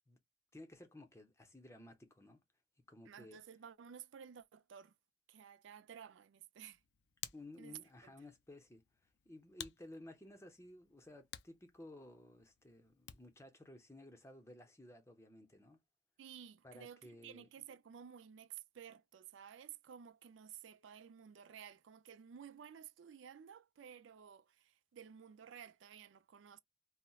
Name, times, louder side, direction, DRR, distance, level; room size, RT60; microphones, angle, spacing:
voice 1, 0.5-2.4 2.9-3.4 7.3-8.8 9.3-15.8 16.6-17.5, left 1 dB, 15° left, 0.6 m, -55 dB
voice 2, 3.0-4.9 5.3-6.8 7.6-8.1 16.2-26.6, right 8 dB, 90° right, 0.4 m, -54 dB
Hands, 6.6-13.5, left 11 dB, 70° left, 0.4 m, -55 dB
4.1 x 2.1 x 2.3 m
head